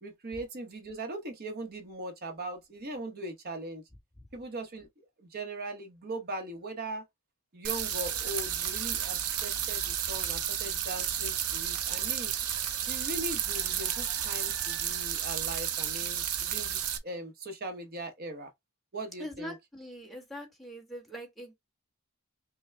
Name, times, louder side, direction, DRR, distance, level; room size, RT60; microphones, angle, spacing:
voice 1, 0.0-3.8 4.3-4.9 5.3-7.0 7.5-12.3 12.9-18.5 18.9-19.5, right 2 dB, 45° right, 0.9 m, -40 dB
sound 1, 7.6-17.0, right 9 dB, 75° right, 0.7 m, -32 dB
voice 2, 19.2-21.6, left 1 dB, ahead, 1.2 m, -42 dB
5.6 x 2.2 x 3.3 m
head